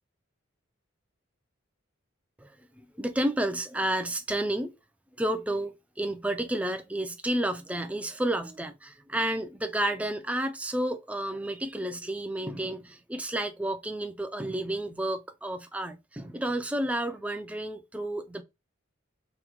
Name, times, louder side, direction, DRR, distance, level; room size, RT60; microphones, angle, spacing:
voice 1, 2.8-4.7 5.2-18.4, right 1 dB, 5° right, 0.3 m, -31 dB
3.0 x 2.2 x 3.5 m
head